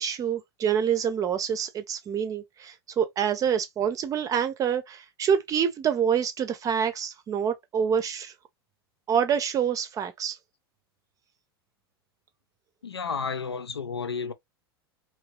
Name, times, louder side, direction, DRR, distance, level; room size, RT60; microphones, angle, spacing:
voice 1, 0.0-8.3 9.1-10.4, right 8 dB, 25° right, 0.6 m, -26 dB
voice 2, 12.8-14.3, left 5 dB, 80° left, 0.6 m, -32 dB
3.8 x 3.0 x 3.0 m
figure-of-eight pair, 90°, 13 cm